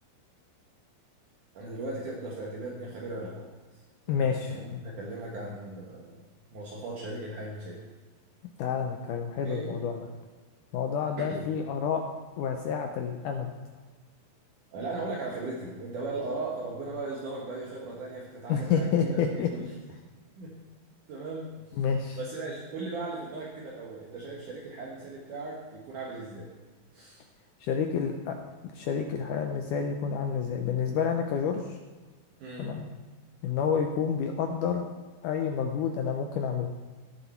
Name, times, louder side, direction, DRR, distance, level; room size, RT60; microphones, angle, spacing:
voice 1, 1.5-3.5 4.1-6.2 6.5-7.8 9.4-9.8 11.2-11.5 14.7-19.7 20.4-20.6 21.1-21.8 22.1-26.5 26.9-27.2 32.4-32.8, right 2 dB, 60° right, -3 dB, 2.7 m, -37 dB
voice 2, 4.1-4.8 8.6-10.1 10.7-12.0 12.4-13.5 18.5-19.5 21.8-22.2 27.6-28.4 28.7-31.6 32.6-32.8 33.4-34.9 35.2-36.7, left 7 dB, 75° left, 4 dB, 1.9 m, -29 dB
17.5 x 7.1 x 4.5 m, 1.3 s
omnidirectional pair, 4.5 m